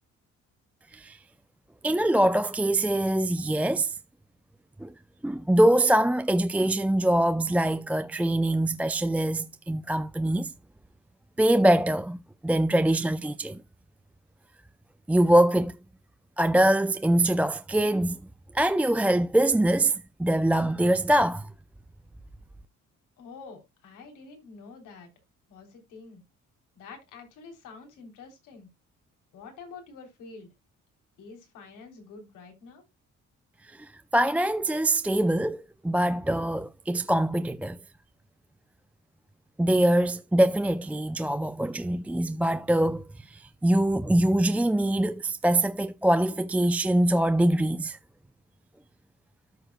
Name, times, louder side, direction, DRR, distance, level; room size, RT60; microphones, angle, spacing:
voice 1, 1.8-4.0 4.8-4.9 5.2-10.5 11.4-13.6 15.1-15.7 16.4-18.2 18.5-21.5 33.8-37.8 39.6-48.0, right 1 dB, 5° right, 0.4 m, -23 dB
voice 2, 23.2-25.1 25.5-26.2 26.7-28.7 29.3-30.5 31.2-32.8, left 4 dB, 90° left, 3.4 m, -47 dB
13.5 x 4.8 x 2.2 m
cardioid pair, 90°, 30 cm